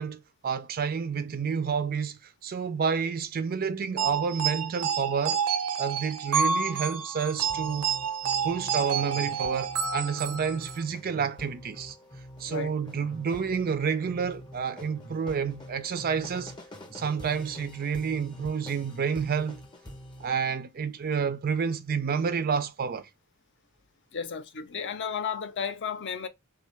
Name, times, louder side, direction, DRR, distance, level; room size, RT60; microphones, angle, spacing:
voice 1, 0.0-5.4 5.8-7.9 8.4-12.0 12.4-16.5 16.9-19.6 20.2-23.1, right 6 dB, 40° right, 0.4 m, -29 dB
sound 1, 4.0-10.8, right 6 dB, 85° right, 0.6 m, -29 dB
sound 2, 7.4-20.3, equal, 20° left, 0.7 m, -46 dB
voice 2, 12.4-12.8 24.1-26.3, left 6 dB, 55° left, 0.6 m, -33 dB
3.6 x 2.3 x 3.1 m
head